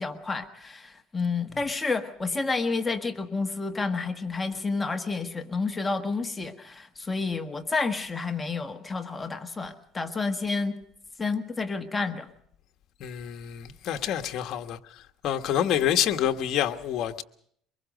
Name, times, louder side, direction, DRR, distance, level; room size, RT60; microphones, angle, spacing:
voice 1, 0.0-10.7 11.2-12.3, left 4 dB, 15° left, 1.4 m, -30 dB
voice 2, 13.0-14.8 15.2-17.2, left 10 dB, 55° left, 1.4 m, -27 dB
24.5 x 21.5 x 5.3 m
cardioid pair, 125°, 0 cm